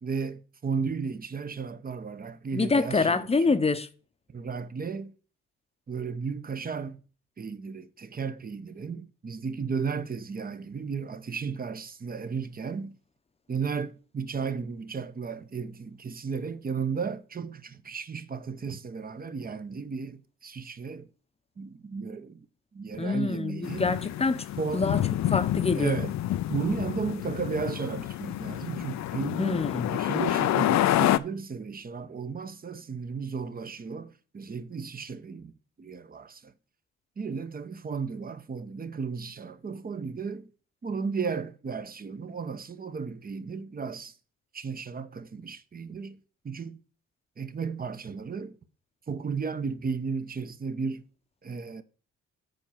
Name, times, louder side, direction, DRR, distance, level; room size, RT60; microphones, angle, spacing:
voice 1, 0.0-3.6 4.3-5.1 5.9-7.0 7.4-13.0 13.5-21.1 21.6-22.5 22.7-23.9 24.6-24.9 25.7-26.2 26.5-29.6 29.9-35.5 35.8-36.5 37.2-40.5 40.8-44.1 44.5-46.2 46.4-46.8 47.4-48.6 49.1-51.0 51.4-51.8, right 5 dB, 30° right, 0.9 m, -34 dB
voice 2, 2.5-3.9 23.0-24.4 24.7-25.0 25.3-26.0 29.4-29.9, left 4 dB, 20° left, 0.8 m, -26 dB
sound 1, 23.6-31.2, left 13 dB, 65° left, 0.5 m, -28 dB
7.8 x 4.6 x 7.1 m
cardioid pair, 90°, 30 cm